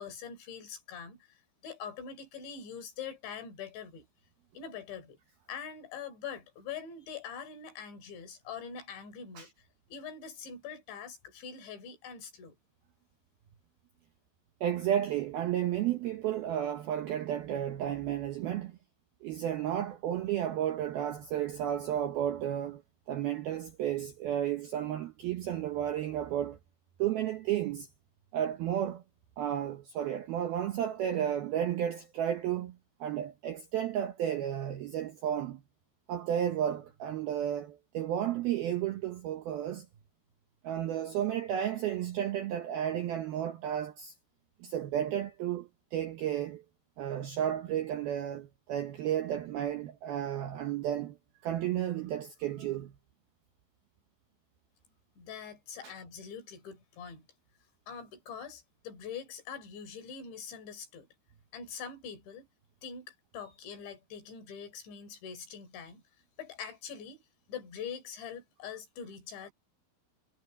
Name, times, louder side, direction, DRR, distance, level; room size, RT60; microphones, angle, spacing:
voice 1, 0.0-4.1 4.5-5.2 5.5-12.6 55.2-57.3 57.9-61.1 61.5-62.5 62.8-66.0 66.4-67.2 67.5-69.5, left 7 dB, 60° left, 6.4 m, -44 dB
voice 2, 14.6-18.8 19.2-22.8 23.1-26.6 27.0-27.9 28.3-29.0 29.4-35.6 36.1-39.9 40.6-44.1 44.6-46.6 47.0-51.2 51.4-52.9 55.8-55.9, right 10 dB, 80° right, 2.2 m, -32 dB
omnidirectional pair, 6.0 m